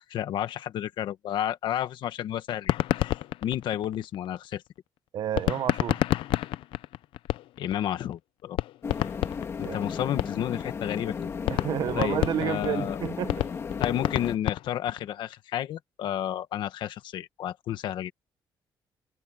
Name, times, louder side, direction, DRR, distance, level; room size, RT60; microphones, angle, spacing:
voice 1, 0.0-4.6 7.6-8.6 9.6-11.3 11.9-13.0 13.8-18.1, left 11 dB, 65° left, 1.4 m, -31 dB
sound 1, 2.6-4.4 5.4-7.8 8.1-8.2 8.5-10.6 11.0-11.1 11.4-15.1, left 15 dB, 85° left, 0.5 m, -29 dB
voice 2, 5.1-6.0 9.6-9.8 11.5-13.4, right 10 dB, 55° right, 0.8 m, -30 dB
sound 2, 8.8-14.4, left 6 dB, 30° left, 1.9 m, -35 dB
cardioid pair, 175°, 9 cm